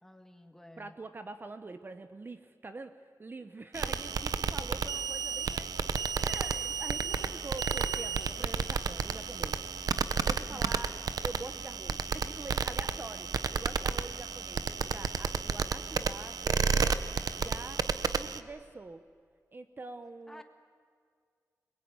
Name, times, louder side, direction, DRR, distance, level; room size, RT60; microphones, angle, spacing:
voice 1, 0.0-1.0 10.5-10.9 20.3-20.4, left 1 dB, 5° left, 6 dB, 1.8 m, -52 dB
voice 2, 0.8-9.6 10.2-17.9 18.2-19.0 19.5-20.4, right 3 dB, 35° right, 10 dB, 0.9 m, -45 dB
sound 1, 3.7-18.4, right 5 dB, 85° right, 0.9 m, -32 dB
25.5 x 21.5 x 9.5 m, 2.1 s
wide cardioid pair, 160°, 6 cm